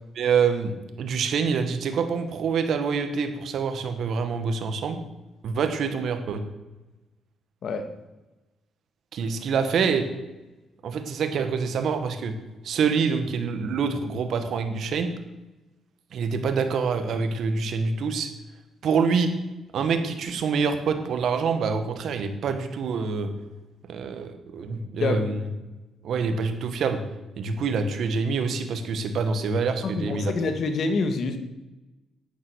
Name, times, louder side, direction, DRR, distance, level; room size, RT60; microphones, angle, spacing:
voice 1, 0.2-5.0 5.4-6.4 9.1-10.1 10.8-12.3 12.6-15.1 16.1-18.3 18.8-19.3 19.7-23.3 23.9-25.5 26.0-27.0 27.4-30.3, right 5 dB, 65° right, 8 dB, 1.8 m, -26 dB
voice 2, 29.9-31.4, left 3 dB, 60° left, 8 dB, 1.9 m, -26 dB
12.5 x 9.4 x 6.5 m, 1.1 s
cardioid pair, 90°, 0 cm